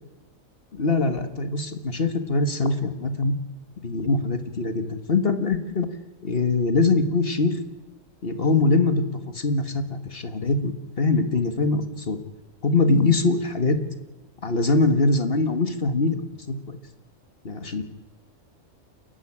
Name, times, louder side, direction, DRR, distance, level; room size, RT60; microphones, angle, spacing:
voice 1, 0.7-3.3 3.8-5.9 6.2-7.6 8.2-9.0 9.3-12.2 12.6-13.8 14.4-16.2 16.5-16.8 17.4-17.8, left 3 dB, 45° left, 9 dB, 1.8 m, -23 dB
29.5 x 11.5 x 9.9 m, 1.1 s
omnidirectional pair, 1.4 m